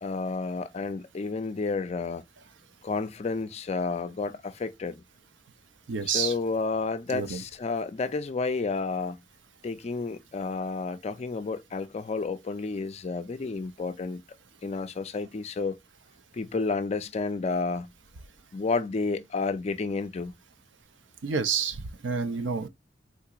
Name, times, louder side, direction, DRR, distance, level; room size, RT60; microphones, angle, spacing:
voice 1, 0.0-2.2 2.8-5.0 6.1-9.2 9.6-14.2 14.6-15.8 16.3-17.9 18.5-20.3, left 4 dB, 35° left, 0.4 m, -31 dB
voice 2, 5.9-6.3 7.1-7.4 21.2-22.7, right 5 dB, 80° right, 0.6 m, -29 dB
3.8 x 2.8 x 2.3 m
head